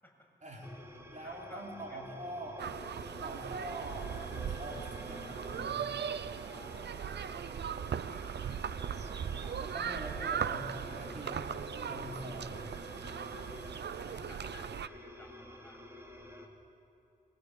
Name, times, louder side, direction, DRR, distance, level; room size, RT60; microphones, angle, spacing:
voice 1, 0.4-2.6 3.2-6.2 9.6-12.6, right 1 dB, 45° right, -2 dB, 4.7 m, -44 dB
sound 1, 0.6-16.5, left 1 dB, 15° right, 3.6 m, -49 dB
voice 2, 1.0-1.6 1.9-2.3 6.4-7.6 7.9-9.8 10.8-11.1 13.0-16.0, left 1 dB, 10° left, -1 dB, 7.5 m, -58 dB
sound 2, 2.6-14.9, right 8 dB, 75° right, 0.6 m, -39 dB
25.5 x 22.0 x 8.6 m, 2.8 s
cardioid pair, 70°, 17 cm